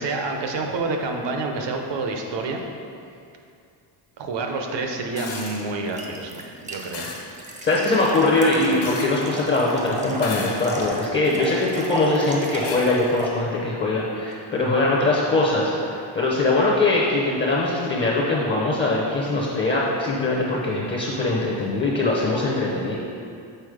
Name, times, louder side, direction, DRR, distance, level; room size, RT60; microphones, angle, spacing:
voice 1, 0.0-2.6 4.2-7.1 7.5-7.6, right 3 dB, 60° right, 3 dB, 0.8 m, -28 dB
sound 1, 5.2-5.7 6.9-7.3 8.8-9.4 10.2-10.9 11.6-11.7 12.6-12.9 14.3-14.4, left 4 dB, 70° left, 1.1 m, -34 dB
sound 2, 5.4-13.3, right 2 dB, 15° right, 0.4 m, -34 dB
voice 2, 7.5-23.0, left 2 dB, 25° left, -4 dB, 0.6 m, -22 dB
6.8 x 4.0 x 4.9 m, 2.5 s
cardioid pair, 180°, 49 cm